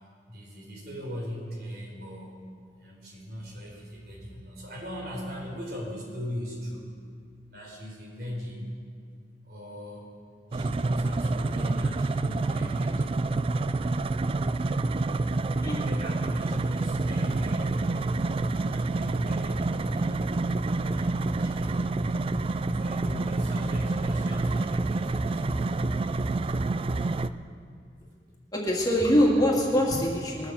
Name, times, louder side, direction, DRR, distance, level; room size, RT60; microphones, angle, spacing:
voice 1, 0.3-2.4 2.8-6.9 7.5-8.7 9.4-10.1 10.5-13.1 15.8-18.2 18.6-20.3 20.9-22.3 22.7-25.8, equal, 60° right, -2 dB, 4.1 m, -39 dB
sound 1, 10.5-27.3, right 2 dB, 30° right, 0.4 m, -28 dB
voice 2, 28.5-30.5, equal, 20° left, -3 dB, 2.2 m, -23 dB
21.5 x 7.3 x 7.0 m, 2.2 s
head